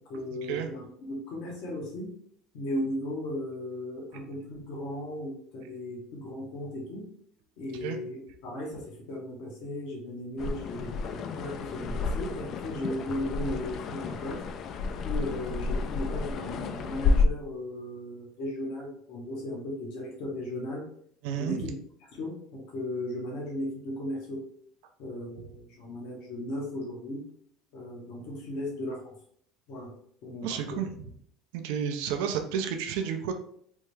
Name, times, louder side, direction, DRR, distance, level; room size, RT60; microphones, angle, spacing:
voice 1, 0.0-2.1 2.5-7.0 7.6-14.4 15.0-20.9 21.3-21.7 22.1-24.4 25.0-27.2 27.7-29.1 29.7-29.9 30.2-30.8, left 1 dB, 70° left, -2 dB, 1.1 m, -36 dB
sound 1, 10.4-17.3, left 3 dB, 50° left, 0.3 m, -30 dB
voice 2, 21.2-21.7 30.4-31.1 31.5-33.3, right 8 dB, 80° right, 5 dB, 0.4 m, -31 dB
3.4 x 2.2 x 3.2 m, 0.65 s
supercardioid pair, 95°, 0 cm